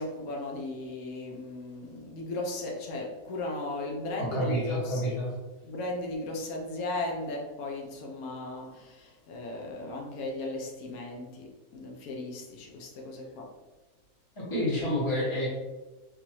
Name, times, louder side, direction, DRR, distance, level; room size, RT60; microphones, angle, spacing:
voice 1, 0.0-5.0 5.6-13.5, left 2 dB, 90° left, 0 dB, 1.2 m, -36 dB
voice 2, 4.2-5.3 14.3-15.5, equal, 20° left, -6 dB, 1.2 m, -29 dB
3.8 x 2.8 x 2.9 m, 1.2 s
omnidirectional pair, 1.5 m